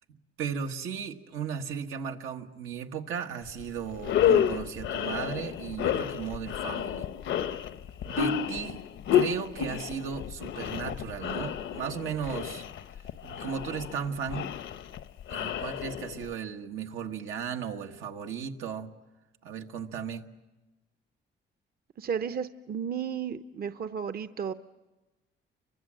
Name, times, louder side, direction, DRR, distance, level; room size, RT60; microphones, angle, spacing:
voice 1, 0.4-7.1 8.0-8.8 9.1-12.6 13.2-14.5 15.3-18.9 19.4-20.3, right 7 dB, 90° right, 4 dB, 1.6 m, -35 dB
sound 1, 3.5-3.6 4.0-16.3, left 9 dB, 75° left, 0.9 m, -30 dB
voice 2, 22.0-24.5, right 7 dB, 50° right, 11 dB, 0.8 m, -33 dB
30.0 x 24.0 x 7.6 m, 1.1 s
cardioid pair, 90°, 20 cm